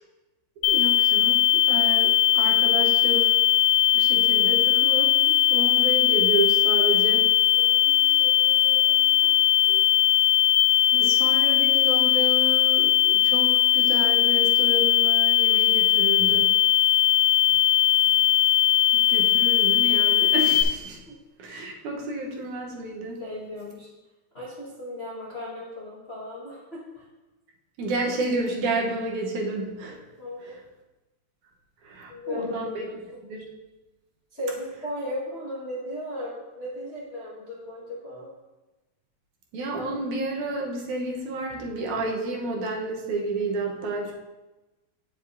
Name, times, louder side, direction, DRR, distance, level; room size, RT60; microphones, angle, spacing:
sound 1, 0.6-20.6, left 12 dB, 75° left, 1.6 m, -20 dB
voice 1, 0.6-3.3 3.9-7.3 10.9-16.5 18.9-21.0 21.4-23.2 27.8-30.0 30.4-30.5 31.8-32.9 33.3-33.5 39.5-44.1, right 2 dB, 75° right, 0 dB, 2.3 m, -30 dB
voice 2, 7.5-9.3 9.6-9.9 21.1-21.2 23.2-23.9 24.3-27.0 30.2-30.5 32.1-33.2 34.3-38.3, left 1 dB, 45° left, -8 dB, 0.8 m, -36 dB
9.3 x 7.4 x 2.6 m, 1.1 s
omnidirectional pair, 3.5 m